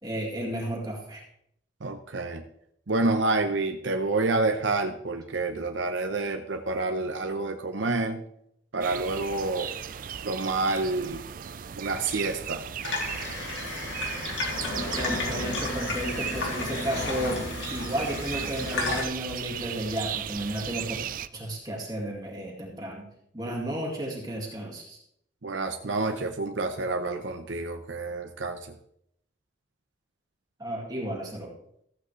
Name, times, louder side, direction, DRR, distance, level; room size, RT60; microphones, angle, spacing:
voice 1, 0.0-1.2 15.0-21.0 21.3-25.0 30.6-31.5, equal, 20° right, -2 dB, 2.0 m, -33 dB
voice 2, 1.8-2.4 2.9-8.2 8.7-9.7 10.2-11.2 11.8-12.6 25.4-28.7, right 3 dB, 85° right, 5 dB, 0.8 m, -28 dB
sound 1, 8.8-21.3, right 9 dB, 45° right, 0.4 m, -37 dB
Water tap faucet / Sink (filling or washing), 12.8-19.0, left 2 dB, 80° left, 2.5 m, -32 dB
15.0 x 8.2 x 3.2 m, 0.72 s
head